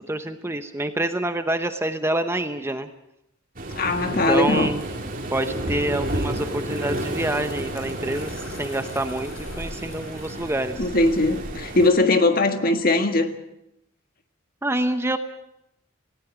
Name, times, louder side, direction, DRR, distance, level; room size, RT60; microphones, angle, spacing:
voice 1, 0.1-2.9 4.1-4.8 5.3-9.3 9.6-10.8 14.6-15.2, right 1 dB, 10° right, 8 dB, 0.9 m, -27 dB
Waves surf, 3.6-11.9, right 1 dB, 40° right, 2.7 m, -31 dB
voice 2, 3.8-4.7 10.8-13.3, left 2 dB, 45° left, 7 dB, 1.7 m, -20 dB
sound 1, 4.4-11.5, left 2 dB, 70° left, 5.5 m, -45 dB
19.0 x 17.5 x 8.1 m, 0.84 s
head